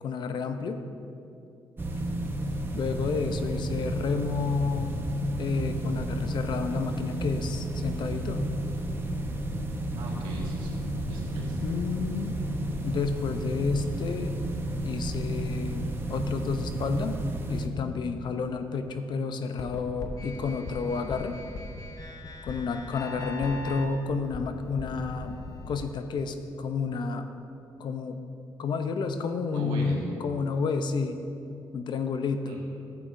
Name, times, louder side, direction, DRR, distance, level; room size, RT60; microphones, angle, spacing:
voice 1, 0.0-0.8 2.7-5.0 5.4-8.5 11.6-12.4 12.8-14.3 14.8-17.2 17.5-21.4 22.4-25.4 25.7-27.3 27.8-28.2 28.6-31.2 31.7-32.6, left 5 dB, 60° left, 8 dB, 0.7 m, -30 dB
sound 1, 1.8-17.7, right 1 dB, 25° right, 0.9 m, -32 dB
voice 2, 10.0-10.8 11.1-11.6 29.5-30.0 32.5-32.6, right 3 dB, 90° right, -3 dB, 1.9 m, -38 dB
sound 2, 19.6-25.7, left 2 dB, 40° left, 1.0 m, -39 dB
12.5 x 8.3 x 2.7 m, 2.7 s
cardioid pair, 80°, 9 cm